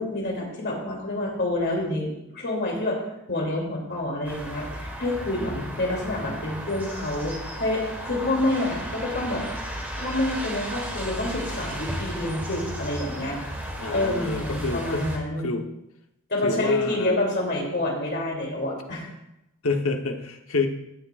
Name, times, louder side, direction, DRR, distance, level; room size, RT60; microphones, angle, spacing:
voice 1, 0.0-3.0 3.3-9.4 9.9-13.4 13.9-15.4 16.3-19.1, left 1 dB, 55° left, -1 dB, 2.9 m, -28 dB
sound 1, 4.2-15.2, equal, 10° right, 1.5 m, -34 dB
voice 2, 5.4-5.7 13.8-15.7 16.4-17.2 19.6-20.7, left 3 dB, 85° left, 4 dB, 1.1 m, -29 dB
14.5 x 9.8 x 2.5 m, 0.85 s
head